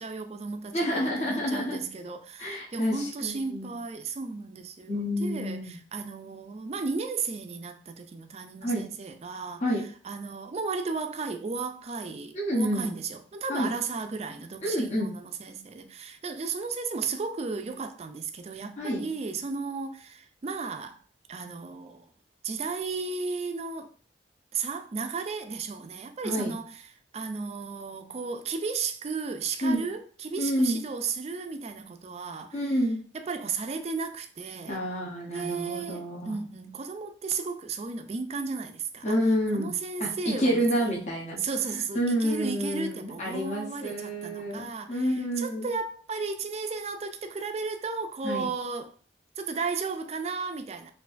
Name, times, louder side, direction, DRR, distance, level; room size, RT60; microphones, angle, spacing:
voice 1, 0.0-9.6 10.0-21.0 21.3-22.1 22.4-23.9 24.5-26.8 27.1-32.8 33.1-34.8 35.3-39.2 39.5-41.1 41.4-49.0 49.4-50.9, right 4 dB, 35° right, 0.4 m, -34 dB
voice 2, 0.7-1.8 2.4-3.7 4.9-5.8 8.6-8.8 9.6-9.8 12.3-12.9 13.5-13.7 14.6-15.1 18.8-19.0 26.2-26.5 29.6-29.9 30.4-30.8 32.5-33.0 34.7-36.4 39.0-39.7 40.0-41.4 41.9-45.7 48.2-48.5, equal, 40° left, 0.9 m, -28 dB
4.4 x 2.5 x 2.5 m
head